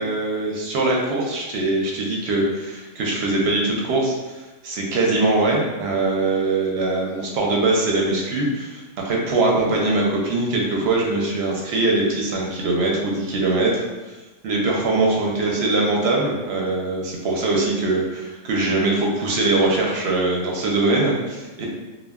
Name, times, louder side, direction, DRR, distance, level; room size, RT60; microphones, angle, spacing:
voice 1, 0.0-4.1 4.6-13.8 14.4-21.7, right 2 dB, 60° right, -2 dB, 0.7 m, -22 dB
2.1 x 2.1 x 3.4 m, 1.1 s
omnidirectional pair, 1.4 m